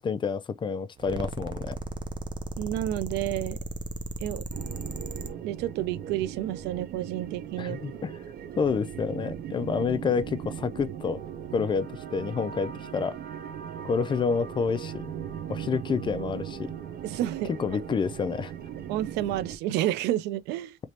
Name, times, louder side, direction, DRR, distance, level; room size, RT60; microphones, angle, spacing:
voice 1, 0.0-1.8 7.6-8.1 8.6-11.2 11.5-13.2 13.8-15.1 15.5-16.7 17.5-18.5, left 5 dB, 30° left, 0.4 m, -28 dB
sound 1, 1.0-5.3, right 2 dB, 25° right, 0.6 m, -35 dB
voice 2, 2.6-3.6 4.2-4.4 5.4-7.8 17.0-17.5 18.9-20.8, right 13 dB, 90° right, 0.4 m, -30 dB
sound 2, 4.5-19.6, right 9 dB, 65° right, 0.8 m, -38 dB
3.3 x 2.9 x 2.8 m
cardioid pair, 110°, 17 cm